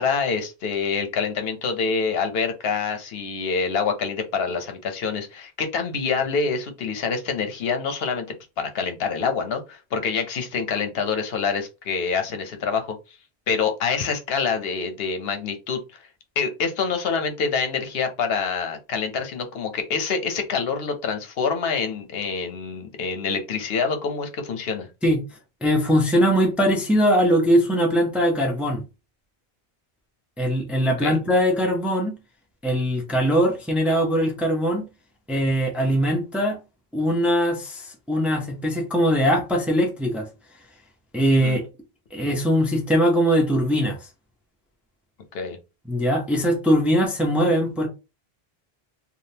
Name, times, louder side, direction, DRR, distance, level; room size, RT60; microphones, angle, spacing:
voice 1, 0.0-8.2 8.6-13.2 13.5-16.0 16.4-24.9 31.0-31.2 41.4-41.6 45.3-45.6, left 5 dB, 75° left, 0.9 m, -26 dB
voice 2, 25.6-28.8 30.4-32.2 32.6-34.8 35.3-36.6 36.9-40.3 41.1-41.6 42.1-44.0 45.9-47.9, equal, ahead, 0.5 m, -21 dB
3.5 x 2.3 x 2.7 m
omnidirectional pair, 1.0 m